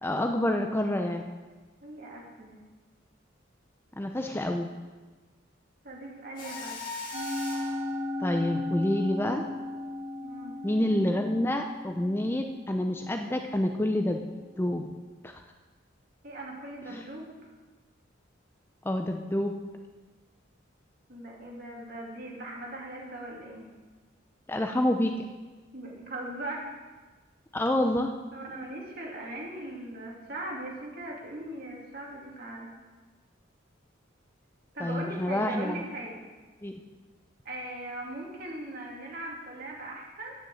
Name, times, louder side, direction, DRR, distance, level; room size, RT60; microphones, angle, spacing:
voice 1, 0.0-1.3 4.0-4.7 8.2-9.4 10.6-14.2 14.6-15.0 15.2-15.4 16.9-17.0 18.8-19.5 24.5-25.1 27.5-28.2 34.8-35.8 36.6-36.7, left 1 dB, 10° left, 4 dB, 0.5 m, -28 dB
voice 2, 1.8-2.6 5.8-6.8 10.2-10.5 16.2-17.5 21.1-23.7 25.7-26.7 28.3-32.7 34.7-36.2 37.4-40.4, right 1 dB, 50° right, -2 dB, 2.7 m, -39 dB
Mechanisms, 6.4-7.8, left 3 dB, 45° left, 2.5 m, -39 dB
Musical instrument, 7.1-13.5, left 1 dB, 30° right, 1.1 m, -36 dB
9.4 x 7.0 x 7.8 m, 1.3 s
head